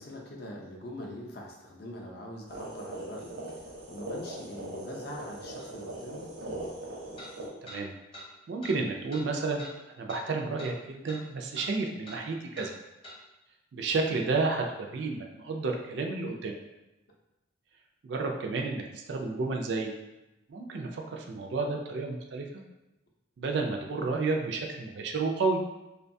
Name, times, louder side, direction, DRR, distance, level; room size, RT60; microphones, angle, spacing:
voice 1, 0.0-6.3, left 1 dB, 50° left, -1 dB, 0.5 m, -43 dB
sound 1, 2.5-7.5, right 1 dB, 85° right, 0.8 m, -40 dB
sound 2, 5.6-5.7 7.2-7.3 7.7-7.8 8.1-8.3 8.6-8.8 9.1-9.2 9.6-9.7 10.1-10.2 10.6-10.7 11.1-11.2 11.5-11.7 12.0-12.2 12.5-12.7 13.0-13.2, left 1 dB, 30° left, 0.7 m, -45 dB
voice 2, 7.6-7.9 8.5-9.6 10.0-12.7 13.7-16.6 18.0-18.8 19.1-19.9 20.5-22.5 23.4-25.6, right 3 dB, 60° right, 2 dB, 0.3 m, -31 dB
2.6 x 2.2 x 2.6 m, 0.97 s
head